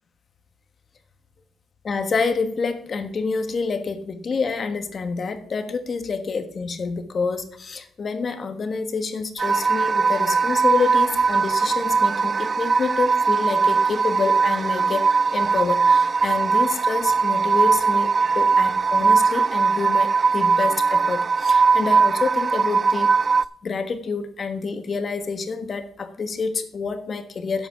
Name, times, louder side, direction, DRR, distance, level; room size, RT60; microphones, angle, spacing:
voice 1, 1.8-15.0 15.3-23.1 23.6-27.7, left 4 dB, 45° left, 9 dB, 1.4 m, -27 dB
sound 1, 9.4-23.4, right 5 dB, 35° right, 0.3 m, -20 dB
11.0 x 8.1 x 4.8 m, 0.66 s
cardioid pair, 90°, 0 cm